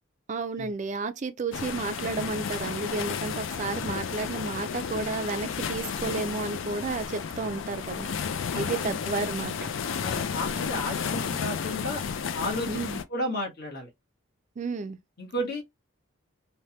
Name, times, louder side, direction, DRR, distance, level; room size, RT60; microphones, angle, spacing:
voice 1, 0.3-8.1 8.6-9.7 12.7-13.0 14.6-15.0, right 4 dB, 35° right, 0.4 m, -32 dB
sound 1, 1.5-13.0, left 6 dB, 65° left, 0.4 m, -32 dB
voice 2, 8.5-8.9 10.0-12.0 12.3-12.8 13.1-13.9 15.2-15.6, left 1 dB, 50° left, 1.2 m, -33 dB
3.3 x 2.1 x 2.8 m
head